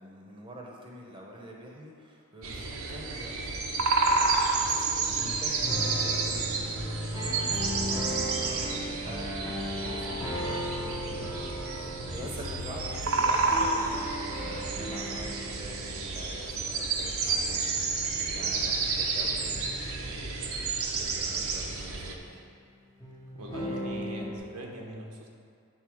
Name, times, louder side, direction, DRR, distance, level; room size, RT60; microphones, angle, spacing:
voice 1, 0.0-3.7 4.9-22.4, right 1 dB, 20° right, -1 dB, 1.0 m, -46 dB
sound 1, 2.4-22.1, right 4 dB, 65° right, 0.8 m, -30 dB
voice 2, 5.1-5.4 23.3-25.3, right 1 dB, 85° right, 0 dB, 1.2 m, -41 dB
sound 2, 5.6-16.9 17.2-18.4 19.3-22.5 23.0-24.4, equal, 15° left, 1.0 m, -37 dB
9.4 x 3.9 x 6.2 m, 2.4 s
head